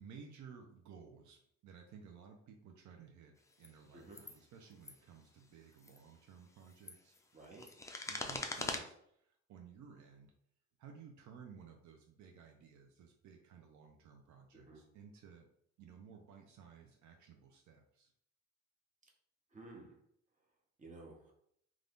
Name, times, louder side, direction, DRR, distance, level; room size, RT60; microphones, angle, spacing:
voice 1, 0.0-7.2 8.0-10.3 10.8-15.5 15.8-18.1, right 6 dB, 70° right, 3 dB, 0.5 m, -56 dB
sound 1, 3.5-3.7 4.1-4.4 4.7-4.9 5.7-6.0 6.6-8.8, left 2 dB, 10° left, 0.3 m, -42 dB
voice 2, 7.3-7.7 14.5-14.8 19.5-19.9 20.8-21.3, right 2 dB, 25° right, 0 dB, 0.8 m, -53 dB
2.5 x 2.3 x 3.4 m, 0.71 s
cardioid pair, 90°, 30 cm